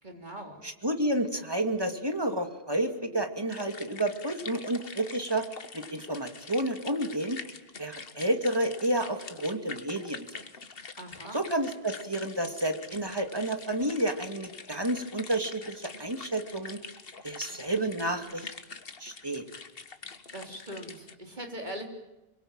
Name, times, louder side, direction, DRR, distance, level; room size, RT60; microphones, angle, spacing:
voice 1, 0.0-0.6 11.0-11.4 20.3-21.9, equal, 45° right, 2 dB, 3.9 m, -41 dB
voice 2, 0.6-5.4 5.7-7.4 7.8-10.2 11.3-16.8 17.2-18.5 19.0-19.4, right 1 dB, 25° right, 5 dB, 2.4 m, -30 dB
sound 1, 3.5-21.1, left 4 dB, 65° left, 1.6 m, -45 dB
25.5 x 23.0 x 8.9 m, 0.99 s
omnidirectional pair, 1.0 m